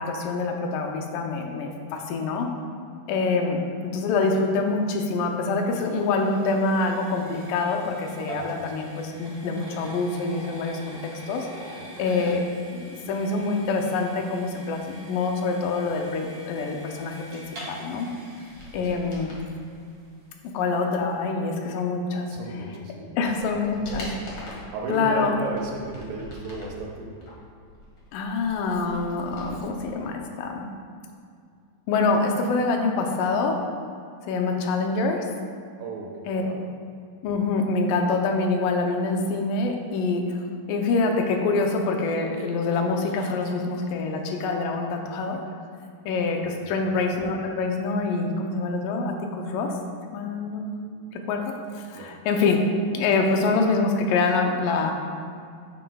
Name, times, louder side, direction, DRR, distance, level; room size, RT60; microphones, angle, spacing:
voice 1, 0.0-2.5 3.1-11.0 11.3-12.4 12.7-18.1 18.7-19.3 20.4-22.3 23.2-24.1 24.9-25.3 28.1-30.6 31.9-33.6 34.3-35.3 36.3-36.4 37.2-40.4 40.7-45.4 46.1-49.7 50.1-50.9 51.3-52.6 52.9-54.9, left 3 dB, 75° left, 2 dB, 2.2 m, -25 dB
sound 1, 4.8-20.0, right 1 dB, 40° right, 1.8 m, -44 dB
voice 2, 8.3-8.7 11.8-12.0 18.7-18.8 22.3-23.3 23.7-27.1 35.8-36.7 46.6-47.0 51.9-52.2, right 3 dB, 80° right, -1 dB, 2.5 m, -36 dB
sound 2, 18.4-19.5 22.5-22.6 23.1-24.8 25.3-26.8 27.2-29.9 30.1-30.2, left 2 dB, 50° left, 1.4 m, -43 dB
9.1 x 7.4 x 2.3 m, 2.3 s
omnidirectional pair, 4.3 m